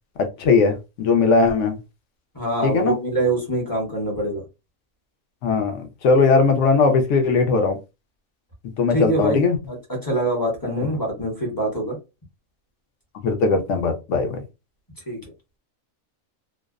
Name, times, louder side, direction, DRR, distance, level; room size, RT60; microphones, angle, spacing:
voice 1, 0.4-1.8 2.6-2.9 5.4-7.8 8.8-9.6 13.2-14.4, left 4 dB, 70° left, 0.8 m, -19 dB
voice 2, 2.3-4.4 8.9-12.0 15.1-15.2, right 1 dB, 20° left, 0.6 m, -24 dB
2.5 x 2.0 x 2.3 m
omnidirectional pair, 1.5 m